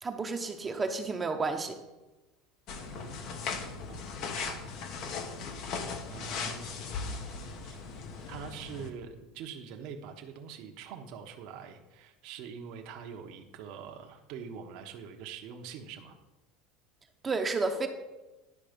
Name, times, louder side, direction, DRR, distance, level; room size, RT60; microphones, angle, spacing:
voice 1, 0.0-1.8 17.2-17.9, right 3 dB, 20° right, 5 dB, 0.8 m, -31 dB
sound 1, 2.7-8.9, left 5 dB, 55° left, 1.1 m, -38 dB
voice 2, 2.9-4.6 5.3-5.4 6.1-6.8 7.6-7.9 8.3-16.2, right 6 dB, 60° right, 3 dB, 1.1 m, -44 dB
11.0 x 5.2 x 5.2 m, 1.1 s
supercardioid pair, 125°, 0 cm